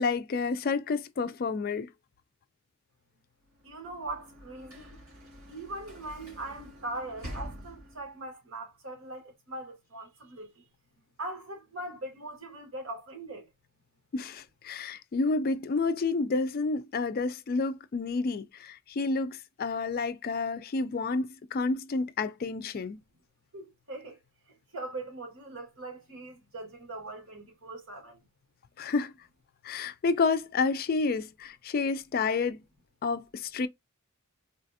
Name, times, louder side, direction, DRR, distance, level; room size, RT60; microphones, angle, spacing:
voice 1, 0.0-1.9 14.1-23.0 28.8-29.1 29.6-32.6 33.0-33.7, left 4 dB, 45° left, 0.4 m, -30 dB
Sliding door / Slam, 3.5-8.3, equal, 85° right, 2.2 m, -46 dB
voice 2, 3.6-5.0 5.5-10.7 11.2-13.5 23.5-24.2 24.5-28.2, right 2 dB, 60° right, 1.6 m, -41 dB
4.0 x 2.4 x 2.6 m
head